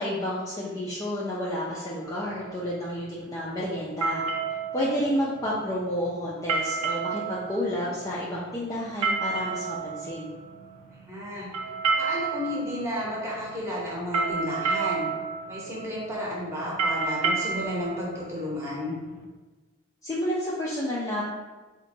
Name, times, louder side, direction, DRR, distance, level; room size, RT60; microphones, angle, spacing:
voice 1, 0.0-4.2 4.7-10.3 20.0-21.3, equal, 15° left, -7 dB, 0.3 m, -30 dB
sound 1, 2.0-19.2, right 5 dB, 90° right, 0.4 m, -31 dB
voice 2, 11.1-11.5 12.0-15.1 15.5-18.9, left 1 dB, 15° right, -6 dB, 0.8 m, -32 dB
3.8 x 2.2 x 2.6 m, 1.3 s
head